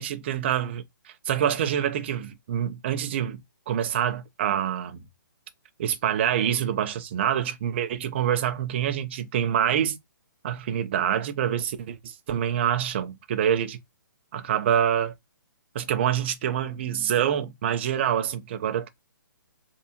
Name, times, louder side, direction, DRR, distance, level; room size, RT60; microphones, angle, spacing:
voice 1, 0.0-3.4 3.7-5.0 5.8-10.0 10.4-13.8 14.3-15.1 15.7-18.9, right 9 dB, 35° right, 0.5 m, -26 dB
3.3 x 2.7 x 2.7 m
hypercardioid pair, 160°, 11 cm